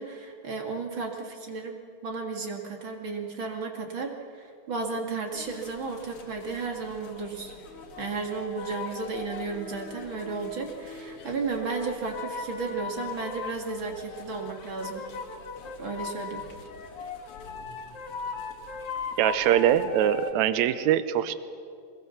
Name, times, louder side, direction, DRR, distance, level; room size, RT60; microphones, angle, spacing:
voice 1, 0.0-7.5 8.0-15.0 15.8-16.5, right 4 dB, 45° right, 2 dB, 2.7 m, -34 dB
sound 1, 5.3-20.3, left 5 dB, 55° left, 2.5 m, -39 dB
voice 2, 19.2-21.3, right 11 dB, 75° right, 13 dB, 2.1 m, -23 dB
24.5 x 21.0 x 7.1 m, 2.3 s
omnidirectional pair, 3.4 m